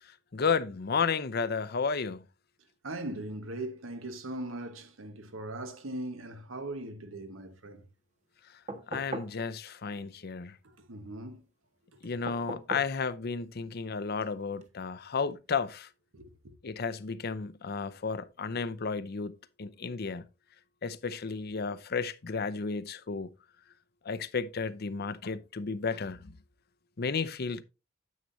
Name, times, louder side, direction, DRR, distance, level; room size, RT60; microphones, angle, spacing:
voice 1, 0.3-2.2 8.9-10.6 12.0-15.9 16.6-20.2 20.8-23.3 24.0-26.3 27.0-27.6, left 5 dB, 50° left, 0.6 m, -33 dB
voice 2, 2.8-7.8 10.9-11.4 16.1-16.3, right 1 dB, 90° right, 1.3 m, -39 dB
sound 1, 8.7-9.4 12.3-13.0 14.6-14.7, right 2 dB, 35° right, 1.3 m, -39 dB
9.3 x 8.4 x 2.7 m
head